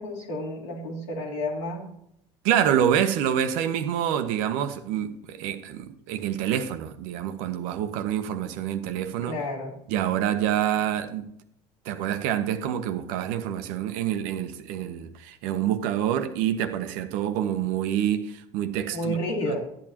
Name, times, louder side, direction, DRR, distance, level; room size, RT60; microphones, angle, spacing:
voice 1, 0.0-1.9 9.2-9.7 18.9-19.7, left 1 dB, 90° left, 2.9 m, -31 dB
voice 2, 2.4-9.4 9.9-11.3 11.8-19.2 19.5-19.6, right 10 dB, 70° right, 0.9 m, -27 dB
12.0 x 8.8 x 2.9 m
hypercardioid pair, 75°, 14 cm